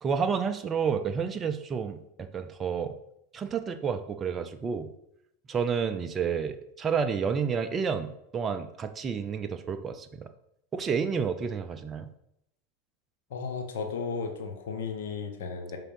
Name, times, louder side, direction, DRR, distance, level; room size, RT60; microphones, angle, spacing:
voice 1, 0.0-2.9 3.3-4.9 5.5-10.3 10.7-12.1, right 6 dB, 30° right, 7 dB, 0.6 m, -30 dB
voice 2, 13.3-15.8, left 5 dB, 75° left, 4 dB, 1.2 m, -34 dB
5.6 x 3.7 x 5.4 m, 0.77 s
hypercardioid pair, 95°, 0 cm